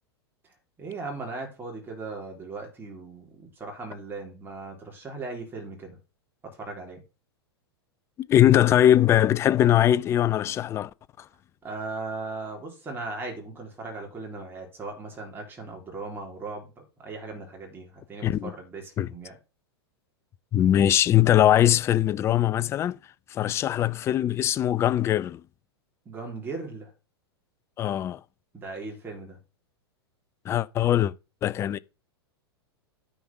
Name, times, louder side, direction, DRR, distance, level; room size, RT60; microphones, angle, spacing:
voice 1, 0.8-6.0 6.4-7.0 11.6-19.4 26.1-26.9 28.5-29.4, right 3 dB, 15° right, 3.8 m, -38 dB
voice 2, 8.2-10.9 18.2-18.5 19.0-19.1 20.5-23.0 23.3-25.4 27.8-28.2 30.5-31.1 31.4-31.8, left 11 dB, 20° left, 0.4 m, -21 dB
9.5 x 5.1 x 5.6 m
figure-of-eight pair, 95°, 13 cm